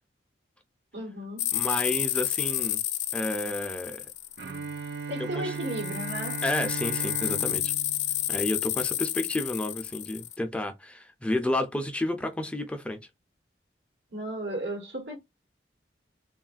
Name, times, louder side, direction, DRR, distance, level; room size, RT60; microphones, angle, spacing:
voice 1, 0.9-1.5 5.1-6.4 14.1-15.2, right 1 dB, 90° right, 1.2 m, -34 dB
sound 1, 1.4-5.0 5.5-10.4, left 14 dB, 80° left, 0.4 m, -30 dB
voice 2, 1.5-2.8 3.1-4.0 5.2-5.5 6.4-7.7 8.3-13.0, left 1 dB, 5° left, 0.4 m, -31 dB
Bowed string instrument, 4.4-9.2, right 5 dB, 65° right, 0.4 m, -38 dB
3.4 x 2.3 x 2.4 m
head